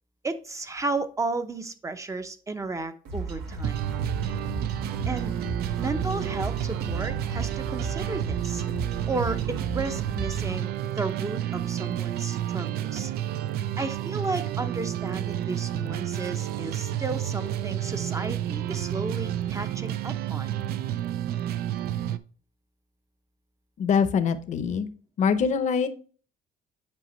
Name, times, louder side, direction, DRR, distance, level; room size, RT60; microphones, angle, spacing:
voice 1, 0.2-3.8 5.1-5.4 5.8-8.6 9.1-13.1 13.8-20.5, right 3 dB, 20° right, 10 dB, 0.7 m, -33 dB
sound 1, 3.0-10.6, right 3 dB, 85° right, 1.3 m, -34 dB
sound 2, 3.6-22.2, right 11 dB, 65° right, 0.4 m, -30 dB
voice 2, 23.8-24.9 25.2-25.9, left 6 dB, 45° left, 10 dB, 0.7 m, -24 dB
8.5 x 5.1 x 3.1 m, 0.40 s
cardioid pair, 110°, 17 cm